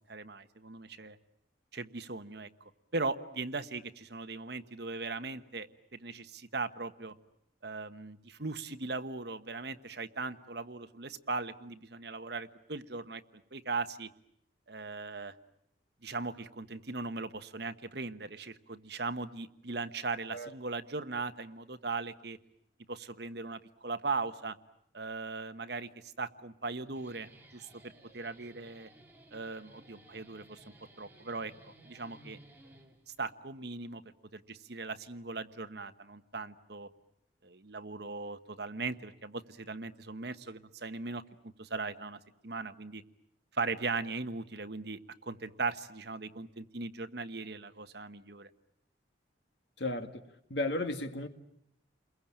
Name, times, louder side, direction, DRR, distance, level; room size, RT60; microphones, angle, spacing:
voice 1, 0.1-1.2 1.7-2.5 2.9-7.1 7.6-13.2 13.5-14.1 14.7-15.4 16.0-22.4 22.9-24.6 24.9-28.9 29.3-30.6 31.0-32.4 33.2-34.0 34.3-36.9 37.4-43.0 43.5-48.5, right 3 dB, 60° right, 1.1 m, -39 dB
Guitar, 26.8-33.3, right 1 dB, 10° right, 3.0 m, -58 dB
voice 2, 49.8-50.2 50.5-51.3, left 2 dB, 65° left, 2.1 m, -34 dB
30.0 x 22.0 x 8.8 m
head